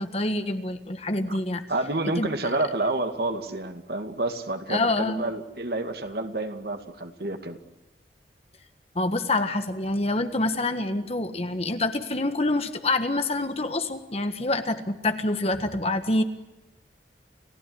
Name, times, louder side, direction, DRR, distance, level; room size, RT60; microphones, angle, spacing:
voice 1, 0.0-1.6 2.2-2.5 4.7-5.2 8.9-16.2, left 2 dB, 35° left, 8 dB, 1.6 m, -26 dB
voice 2, 1.7-7.6, right 2 dB, 60° right, 6 dB, 2.3 m, -29 dB
29.5 x 16.5 x 9.7 m, 0.96 s
head